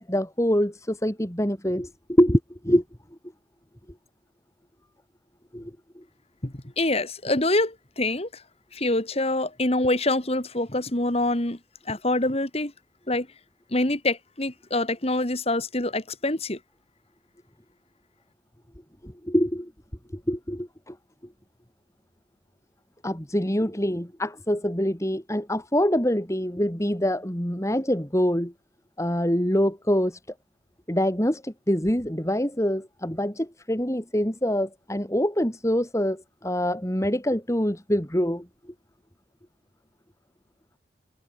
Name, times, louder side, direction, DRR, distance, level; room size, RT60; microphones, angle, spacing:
voice 1, 0.0-2.8 5.5-5.7 6.0-6.1 19.0-19.7 20.1-21.0 23.0-28.5 29.0-30.2 30.9-38.5, equal, 15° left, 4.0 m, -25 dB
voice 2, 6.4-8.4 8.7-11.6 11.9-12.7 13.1-13.3 13.7-16.6, left 2 dB, 35° left, 2.5 m, -25 dB
head